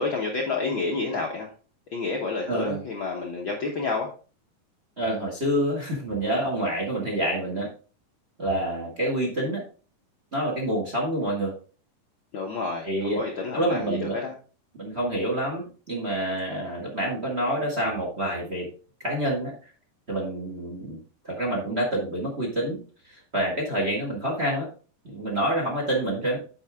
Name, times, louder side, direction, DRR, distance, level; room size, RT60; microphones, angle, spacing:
voice 1, 0.0-1.5 1.9-4.1 12.3-14.3, left 3 dB, 90° left, 0 dB, 1.0 m, -29 dB
voice 2, 2.5-2.8 5.0-7.7 8.4-9.6 10.3-11.5 12.8-13.2 13.5-14.1 14.8-18.7 19.0-19.5 20.1-21.0 21.2-22.8 23.0-24.7 25.0-26.4, right 1 dB, 30° right, 0 dB, 1.3 m, -27 dB
8.8 x 6.0 x 3.5 m, 0.37 s
omnidirectional pair, 3.9 m